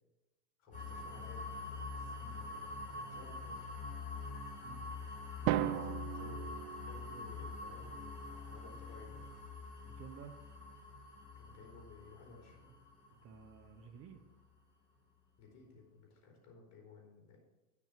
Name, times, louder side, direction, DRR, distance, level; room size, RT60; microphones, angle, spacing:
voice 1, 0.6-1.7 2.0-3.7 5.6-9.3 11.3-12.7 15.4-17.4, left 4 dB, 35° left, -1 dB, 3.6 m, -57 dB
sound 1, 0.7-14.5, left 3 dB, 15° left, 3.4 m, -46 dB
voice 2, 5.4-5.7 9.8-10.4 13.1-14.2, right 8 dB, 30° right, 7 dB, 0.9 m, -52 dB
Drum, 5.5-7.5, right 13 dB, 65° right, 0.7 m, -36 dB
10.0 x 6.0 x 6.0 m, 1.1 s
hypercardioid pair, 120°, 45 cm